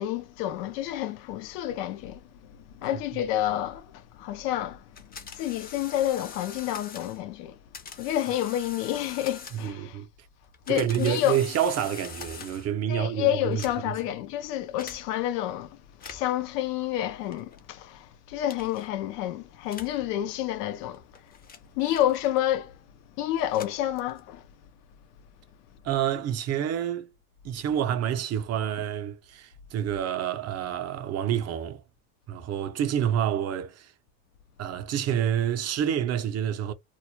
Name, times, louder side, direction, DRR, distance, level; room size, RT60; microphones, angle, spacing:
voice 1, 0.0-2.2 2.7-4.8 5.3-7.6 8.0-10.0 10.7-11.4 12.9-21.0 21.8-22.7 23.2-24.4, left 12 dB, 85° left, 0.6 m, -29 dB
sound 1, 5.0-7.2 7.7-9.9 10.4-12.8 13.4-14.1 14.8-15.0 15.9-16.4 17.3-17.6 18.5-18.9 19.7-20.0 20.8-22.6 23.3-24.4, left 5 dB, 20° left, 0.4 m, -44 dB
voice 2, 9.5-10.1 10.7-14.0 21.8-21.9 25.8-27.1 27.4-31.8 32.3-33.9 34.6-36.7, right 10 dB, 35° right, 0.5 m, -28 dB
2.3 x 2.0 x 2.9 m
supercardioid pair, 110°, 46 cm